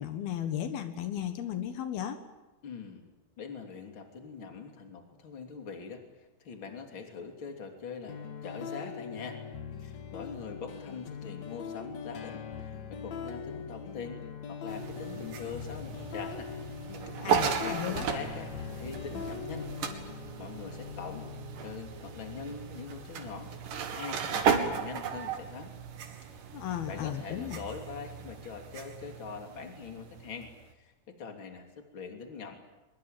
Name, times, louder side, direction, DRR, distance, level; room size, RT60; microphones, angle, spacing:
voice 1, 0.0-2.2 17.2-18.1 26.5-27.6, left 10 dB, 80° left, 8 dB, 3.3 m, -35 dB
voice 2, 2.6-3.0 3.4-9.4 9.8-14.2 14.5-16.5 17.4-19.7 20.1-21.3 21.6-23.5 23.9-25.7 26.9-30.5 30.8-32.6, left 5 dB, 35° left, 4 dB, 3.4 m, -43 dB
sound 1, 8.1-26.0, left 6 dB, 55° left, 2.6 m, -42 dB
sound 2, 14.7-30.7, right 7 dB, 65° right, 3.5 m, -35 dB
23.0 x 23.0 x 9.1 m, 1.1 s
omnidirectional pair, 4.4 m